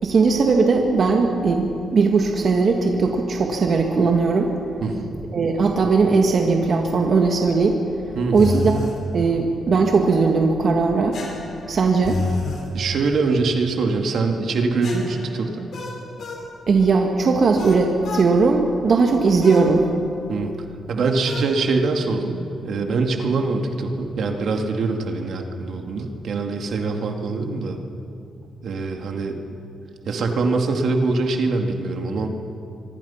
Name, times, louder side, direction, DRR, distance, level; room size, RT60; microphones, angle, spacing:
voice 1, 0.0-4.5 5.3-7.8 8.3-8.7 9.1-11.2 11.7-12.2 16.7-19.9, right 4 dB, 55° right, 2 dB, 2.0 m, -18 dB
voice 2, 4.8-5.1 8.2-8.4 12.7-15.7 20.3-20.5 20.9-27.8 28.6-29.3 30.1-32.3, right 3 dB, 70° right, 3 dB, 2.4 m, -23 dB
sound 1, 8.3-9.0 11.1-12.7 14.8-16.5 17.6-18.3 19.4-19.7 21.3-21.5, left 4 dB, 65° left, 4.8 m, -30 dB
25.0 x 24.0 x 5.8 m, 2.5 s
cardioid pair, 95°, 0 cm